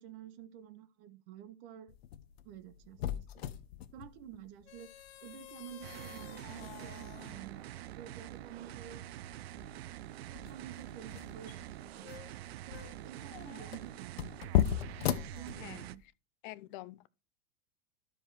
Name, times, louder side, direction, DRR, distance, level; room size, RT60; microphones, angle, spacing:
voice 1, 0.0-1.9 2.4-3.4 3.9-7.6 7.9-9.1 10.3-12.1 12.6-14.5 15.3-16.0, right 10 dB, 60° right, 1.2 m, -50 dB
sound 1, 1.9-16.0, left 10 dB, 75° left, 0.9 m, -38 dB
sound 2, 5.8-16.0, right 14 dB, 75° right, 0.6 m, -46 dB
voice 2, 15.6-15.9 16.4-17.1, left 18 dB, 55° left, 0.6 m, -46 dB
12.0 x 4.9 x 4.7 m
hypercardioid pair, 95°, 31 cm